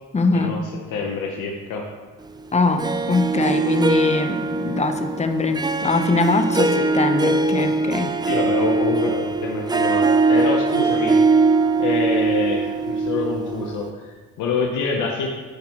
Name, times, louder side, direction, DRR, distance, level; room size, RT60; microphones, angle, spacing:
voice 1, 0.1-0.6 2.5-8.1, left 3 dB, 20° left, 7 dB, 0.7 m, -22 dB
voice 2, 0.9-1.9 8.3-11.2 11.8-15.3, left 4 dB, 85° left, 0 dB, 0.9 m, -26 dB
Harp, 2.8-13.9, right 3 dB, 15° right, 0.4 m, -21 dB
9.9 x 6.0 x 3.0 m, 1.4 s
cardioid pair, 90°, 30 cm